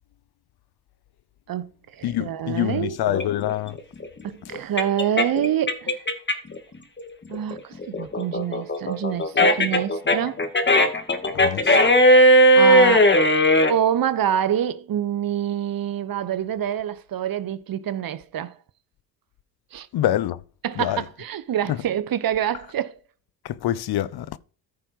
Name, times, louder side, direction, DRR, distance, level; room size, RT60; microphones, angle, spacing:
voice 1, 1.5-3.0 4.2-6.0 7.3-10.4 12.1-13.1 13.7-18.5 19.7-19.9 20.6-22.9, right 10 dB, 45° right, 1.3 m, -26 dB
voice 2, 2.0-3.8 11.3-11.9 19.9-20.4 20.8-21.0 21.7-21.8 23.4-24.4, left 12 dB, 55° left, 1.0 m, -25 dB
sound 1, 3.1-6.6 7.0-13.7, equal, 25° left, 2.4 m, -17 dB
14.5 x 5.4 x 4.8 m
supercardioid pair, 70°, 46 cm